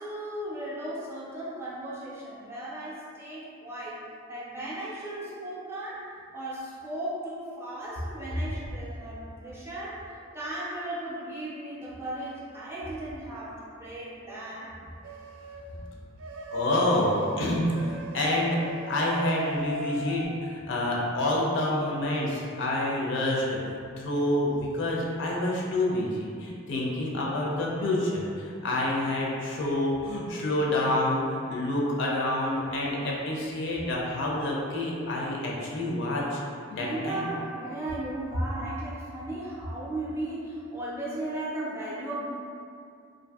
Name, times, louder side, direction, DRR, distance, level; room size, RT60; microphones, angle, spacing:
voice 1, 0.0-14.7 36.8-42.3, right 1 dB, 15° right, -8 dB, 0.4 m, -36 dB
sound 1, 15.0-15.6 16.2-20.3, right 2 dB, 80° right, 0.3 m, -40 dB
voice 2, 16.5-18.6 18.9-23.6 24.0-36.4 36.7-37.3, left 1 dB, 60° left, -3 dB, 0.4 m, -28 dB
2.6 x 2.5 x 2.3 m, 2.4 s
head